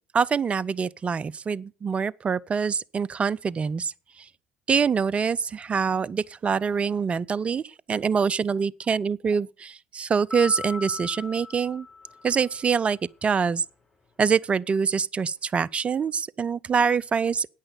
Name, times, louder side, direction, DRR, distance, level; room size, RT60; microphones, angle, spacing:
voice 1, 0.1-3.9 4.7-11.9 12.2-13.6 14.2-17.5, right 6 dB, 30° right, 0.4 m, -25 dB
sound 1, 10.3-12.8, left 4 dB, 10° left, 6.1 m, -38 dB
9.8 x 9.0 x 6.8 m
figure-of-eight pair, 55°, 4 cm